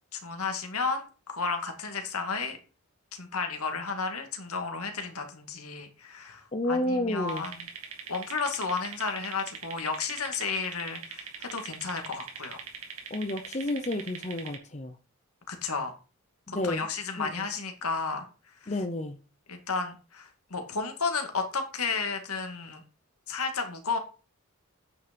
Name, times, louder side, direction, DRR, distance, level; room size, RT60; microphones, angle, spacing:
voice 1, 0.1-2.6 3.1-7.7 8.1-12.6 15.5-15.9 16.5-18.3 18.6-18.7 19.5-22.8 23.3-24.0, left 4 dB, 80° left, 2.1 m, -33 dB
voice 2, 6.5-7.5 13.1-15.0 16.5-16.9 17.2-17.5 18.7-19.2, left 1 dB, 30° left, 0.8 m, -31 dB
sound 1, 7.3-14.6, right 6 dB, 75° right, 2.3 m, -42 dB
9.3 x 6.3 x 5.3 m
head